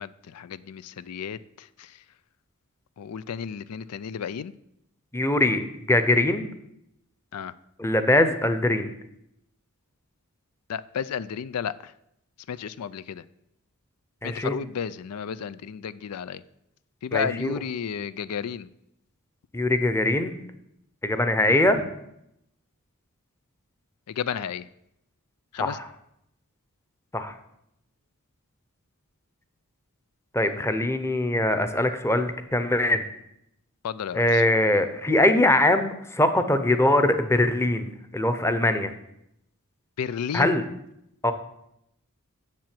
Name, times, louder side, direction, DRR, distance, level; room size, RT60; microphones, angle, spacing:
voice 1, 0.0-1.9 3.0-4.5 7.3-7.5 10.7-11.9 12.5-13.2 14.2-16.4 17.0-18.7 24.1-24.7 25.5-25.8 33.8-34.4 40.0-40.6, left 7 dB, 85° left, 17 dB, 0.4 m, -32 dB
voice 2, 5.1-6.5 7.8-8.9 14.2-14.6 17.1-17.5 19.5-20.3 21.0-21.9 25.6-25.9 27.1-27.4 30.3-33.0 34.1-38.9 40.3-40.6 41.2-41.3, left 1 dB, 10° left, 9 dB, 0.8 m, -22 dB
7.5 x 7.3 x 7.6 m, 0.79 s
head